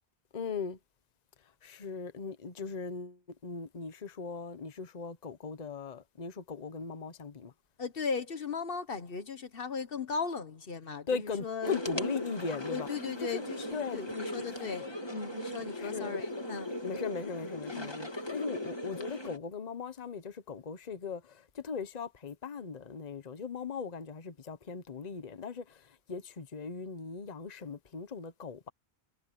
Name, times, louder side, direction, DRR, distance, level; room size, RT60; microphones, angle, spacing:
voice 1, 0.3-0.8 1.6-7.5 11.1-12.9 13.2-13.4 13.7-14.0 15.8-16.2 16.8-28.7, left 5 dB, 40° left, 1.1 m, -39 dB
voice 2, 7.8-11.8 12.7-16.7 17.7-18.0, left 5 dB, 60° left, 1.2 m, -37 dB
sound 1, 11.6-19.4, left 1 dB, 25° left, 1.9 m, -38 dB
omnidirectional pair, 1.1 m